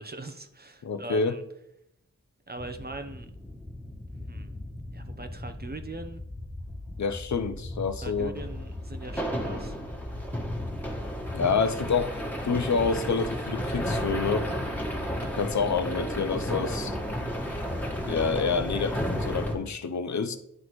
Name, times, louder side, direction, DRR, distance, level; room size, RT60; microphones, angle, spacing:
voice 1, 0.0-1.4 2.5-3.3 4.3-4.5 4.9-6.2 8.0-9.8, right 2 dB, 30° right, 0.7 m, -41 dB
voice 2, 0.8-1.4 7.0-8.3 11.3-12.2 12.4-14.5 15.3-16.9 18.1-20.4, left 5 dB, 65° left, 0.6 m, -28 dB
sound 1, 2.6-19.5, equal, 5° left, 1.4 m, -33 dB
sound 2, 7.7-18.1, right 2 dB, 75° right, 1.2 m, -50 dB
11.0 x 4.1 x 3.1 m
wide cardioid pair, 65°, 31 cm